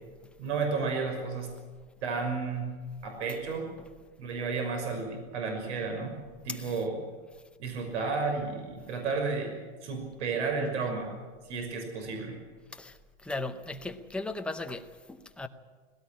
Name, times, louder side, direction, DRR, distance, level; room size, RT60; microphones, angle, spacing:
voice 1, 0.4-1.5 2.0-2.7 3.0-3.7 4.2-6.2 6.4-7.0 7.6-9.5 9.8-11.1 11.4-12.4, right 4 dB, 90° right, 5.9 m, -32 dB
voice 2, 12.7-15.5, left 2 dB, 5° left, 0.6 m, -37 dB
19.5 x 17.5 x 9.9 m
supercardioid pair, 165°, 34 cm